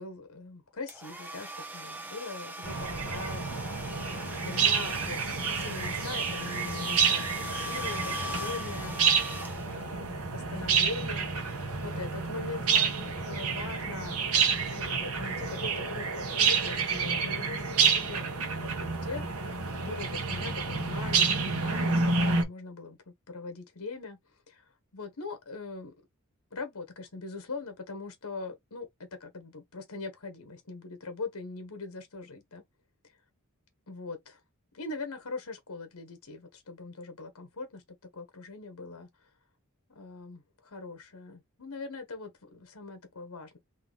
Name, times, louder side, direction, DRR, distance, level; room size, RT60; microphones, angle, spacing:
voice 1, 0.0-9.0 9.6-23.0 23.3-24.2 24.5-24.6 24.9-25.9 26.5-32.6 33.9-34.4 34.7-39.1 39.9-43.6, left 3 dB, 85° left, 1.2 m, -42 dB
sound 1, 0.9-10.0, left 1 dB, 10° right, 0.7 m, -40 dB
sound 2, 2.6-22.4, right 5 dB, 90° right, 1.2 m, -29 dB
3.9 x 2.8 x 3.9 m
head